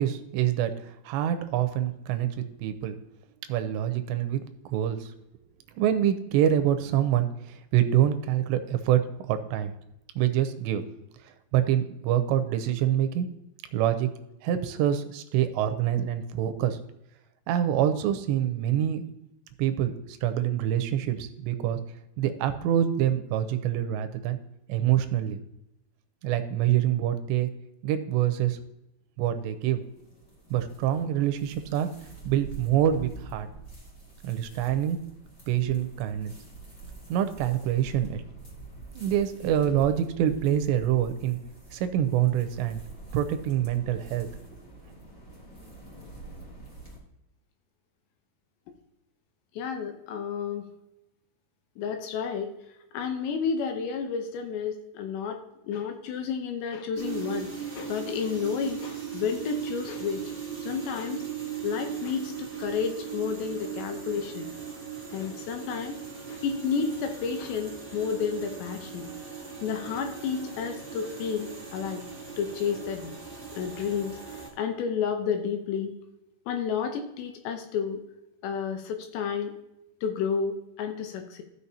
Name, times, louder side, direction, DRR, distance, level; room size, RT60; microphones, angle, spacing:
voice 1, 0.0-3.0 3.5-4.4 4.7-5.1 5.8-9.7 10.2-10.8 11.5-13.3 13.7-14.1 14.4-16.8 17.5-19.1 19.6-21.8 22.2-24.4 24.7-25.4 26.2-27.5 27.8-28.6 29.2-29.9 30.5-31.9 32.3-33.5 34.2-35.0 35.5-36.3 37.1-38.2 38.9-41.4 41.7-42.8 43.1-44.3, right 11 dB, 80° right, 9 dB, 2.7 m, -26 dB
sound 1, 29.3-47.0, right 3 dB, 55° left, 0.7 m, -46 dB
voice 2, 49.6-50.6 51.8-52.5 52.9-60.2 60.6-61.3 61.6-64.5 65.1-66.0 66.3-69.1 69.6-72.0 72.4-73.1 73.5-75.9 76.5-78.0 78.4-79.5 80.0-81.4, left 6 dB, 75° left, 6 dB, 2.8 m, -31 dB
sound 2, 56.9-74.5, right 7 dB, 15° right, 2.4 m, -38 dB
15.0 x 6.4 x 2.7 m, 0.87 s
omnidirectional pair, 5.3 m